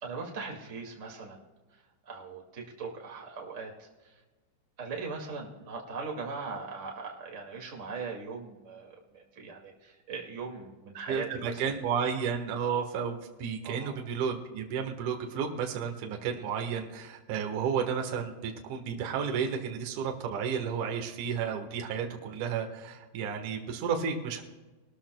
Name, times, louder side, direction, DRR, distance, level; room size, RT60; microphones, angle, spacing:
voice 1, 0.0-1.4 2.0-4.1 4.8-11.6 13.6-13.9, right 4 dB, 30° right, -1 dB, 1.3 m, -40 dB
voice 2, 11.1-24.4, right 7 dB, 60° right, 3 dB, 2.3 m, -32 dB
22.0 x 13.0 x 2.3 m, 1.2 s
omnidirectional pair, 5.2 m